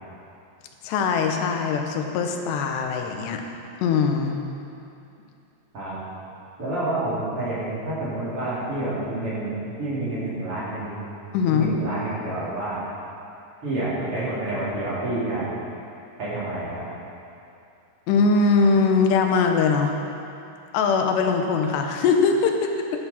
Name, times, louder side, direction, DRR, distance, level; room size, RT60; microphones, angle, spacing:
voice 1, 0.8-3.4 3.8-4.4 11.3-11.7 18.1-19.9 20.7-22.6, left 5 dB, 85° left, 4 dB, 3.1 m, -21 dB
voice 2, 6.6-9.5 9.8-11.0 11.5-12.8 13.6-15.5 16.2-16.9, right 2 dB, 35° right, -9 dB, 3.7 m, -28 dB
12.5 x 11.5 x 5.8 m, 2.6 s
omnidirectional pair, 4.8 m